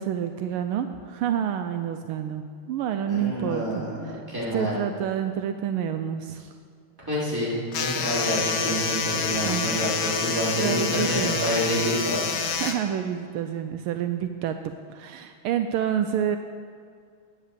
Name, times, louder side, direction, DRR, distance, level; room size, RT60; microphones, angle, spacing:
voice 1, 0.0-4.2 4.5-6.5 9.5-9.8 10.5-11.4 12.4-16.4, right 9 dB, 80° right, 7 dB, 1.4 m, -28 dB
voice 2, 3.0-4.8 7.1-12.2, equal, 10° right, -8 dB, 3.7 m, -28 dB
sound 1, 7.7-12.7, left 6 dB, 60° left, 1.3 m, -28 dB
10.0 x 8.5 x 6.7 m, 2.2 s
omnidirectional pair, 2.4 m